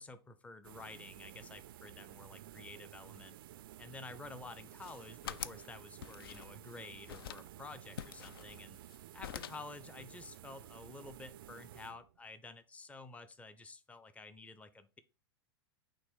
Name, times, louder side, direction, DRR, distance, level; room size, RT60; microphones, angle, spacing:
voice 1, 0.0-3.4 3.8-8.8 9.1-15.0, left 3 dB, 10° left, 12 dB, 0.6 m, -51 dB
sound 1, 0.6-12.3, right 13 dB, 60° right, 0.4 m, -53 dB
sound 2, 4.6-5.7 6.0-6.7 7.1-7.5 8.0-9.0 9.2-9.7, left 11 dB, 60° left, 0.4 m, -46 dB
6.1 x 3.1 x 5.3 m, 0.32 s
figure-of-eight pair, 100°, 14 cm